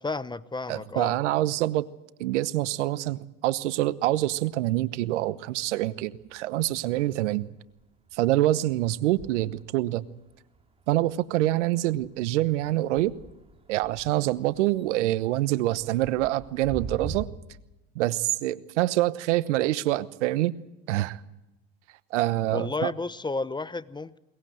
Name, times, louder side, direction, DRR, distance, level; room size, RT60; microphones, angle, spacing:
voice 1, 0.0-1.1 22.5-24.2, left 3 dB, 10° left, 0.9 m, -32 dB
voice 2, 0.7-1.9 2.2-7.5 8.1-10.0 10.9-13.1 13.7-17.3 17.9-20.6 20.9-21.2 22.1-22.9, right 16 dB, 80° right, 1.1 m, -26 dB
sound 1, 4.0-5.2 5.6-17.3, right 4 dB, 15° right, 2.6 m, -46 dB
22.0 x 20.5 x 7.8 m
hypercardioid pair, 90°, 35 cm